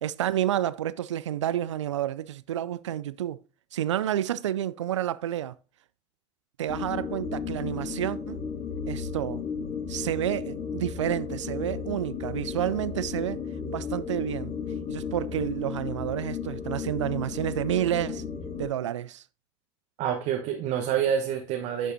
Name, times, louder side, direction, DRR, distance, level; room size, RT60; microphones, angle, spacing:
voice 1, 0.0-3.4 3.7-5.5 6.6-8.4 8.9-9.4 9.9-13.4 13.7-14.5 14.9-18.2 18.6-19.2, right 11 dB, 80° right, 0.4 m, -30 dB
sound 1, 6.7-18.7, left 6 dB, 40° left, 2.2 m, -34 dB
voice 2, 20.0-21.9, right 8 dB, 50° right, 1.2 m, -27 dB
11.0 x 6.6 x 2.7 m
hypercardioid pair, 80°, 15 cm